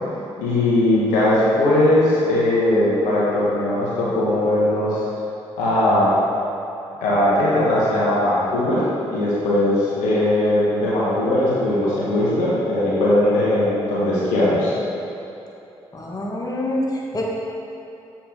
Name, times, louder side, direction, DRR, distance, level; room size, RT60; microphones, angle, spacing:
voice 1, 0.4-5.0 5.6-6.1 7.0-8.8 9.1-14.7, left 1 dB, 80° left, -7 dB, 1.3 m, -19 dB
voice 2, 15.9-17.2, left 1 dB, 30° left, -3 dB, 1.3 m, -26 dB
7.3 x 4.7 x 3.7 m, 2.9 s
hypercardioid pair, 45°, 13 cm